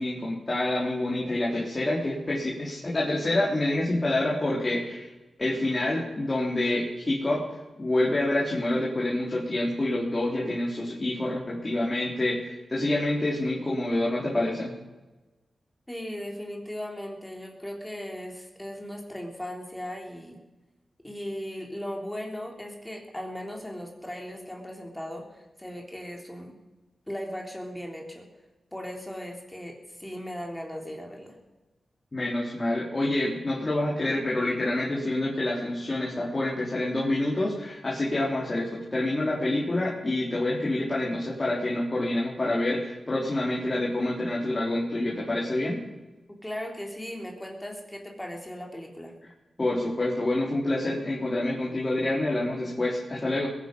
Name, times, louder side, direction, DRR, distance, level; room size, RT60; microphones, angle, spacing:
voice 1, 0.0-5.1 5.4-7.4 7.8-14.7 32.1-45.8 49.6-53.5, left 1 dB, 30° left, -5 dB, 3.8 m, -27 dB
voice 2, 15.9-20.4 21.0-26.6 27.1-28.3 28.7-31.4 46.4-49.1, equal, 10° left, 1 dB, 3.3 m, -37 dB
21.5 x 9.9 x 5.3 m, 1.1 s
cardioid pair, 70°, 0 cm